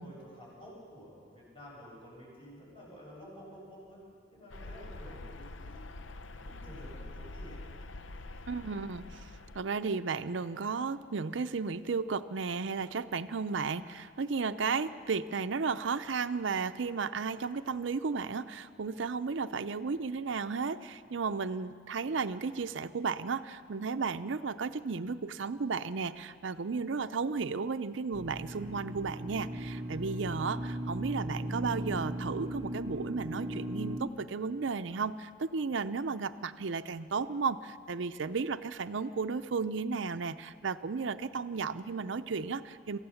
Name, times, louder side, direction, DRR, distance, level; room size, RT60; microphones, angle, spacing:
voice 1, 0.0-4.0 4.3-5.9 6.4-7.6, equal, 25° left, -5 dB, 7.5 m, -51 dB
sound 1, 4.5-9.6, left 2 dB, 85° left, 0.7 m, -45 dB
voice 2, 8.5-43.0, right 5 dB, 75° right, 11 dB, 0.6 m, -34 dB
sound 2, 28.1-34.0, right 1 dB, 20° right, 0.7 m, -37 dB
24.0 x 15.0 x 7.1 m, 2.1 s
head